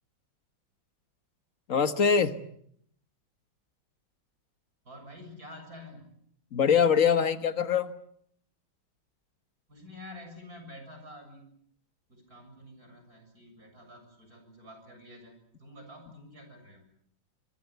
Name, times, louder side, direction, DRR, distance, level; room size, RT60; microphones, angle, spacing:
voice 1, 1.7-2.3 6.5-7.9, left 6 dB, 45° left, 10 dB, 1.7 m, -23 dB
voice 2, 4.8-6.1 9.7-11.5 12.1-16.9, left 1 dB, 45° right, 5 dB, 7.8 m, -48 dB
25.5 x 24.0 x 8.3 m, 0.69 s
omnidirectional pair, 2.1 m